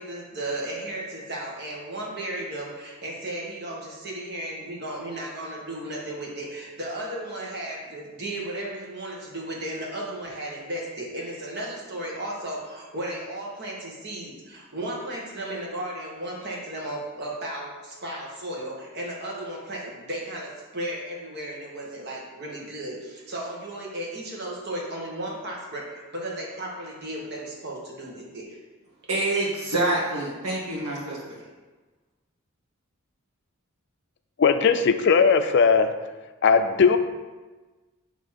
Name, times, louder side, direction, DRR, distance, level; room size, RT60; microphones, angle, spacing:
voice 1, 0.0-28.6 29.3-29.5, right 1 dB, 50° right, -2 dB, 1.4 m, -35 dB
voice 2, 29.1-31.4, right 2 dB, 85° right, -6 dB, 1.2 m, -26 dB
voice 3, 34.4-35.9 36.4-37.0, left 5 dB, 50° left, 9 dB, 0.4 m, -18 dB
6.8 x 3.0 x 5.7 m, 1.3 s
head